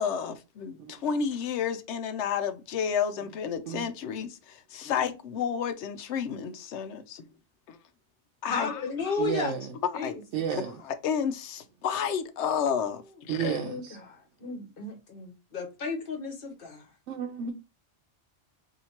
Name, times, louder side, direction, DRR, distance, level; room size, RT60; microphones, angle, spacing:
voice 1, 0.0-7.2 7.7-7.8 8.4-8.8 9.8-10.2 10.8-13.6, left 7 dB, 80° left, 0.9 m, -31 dB
voice 2, 8.5-9.5 9.9-10.1 13.4-16.9, left 4 dB, 55° left, 1.1 m, -34 dB
voice 3, 9.2-9.7 10.3-10.8 13.3-14.0 17.1-17.5, right 8 dB, 85° right, 0.9 m, -32 dB
4.4 x 2.7 x 2.8 m
omnidirectional pair, 1.2 m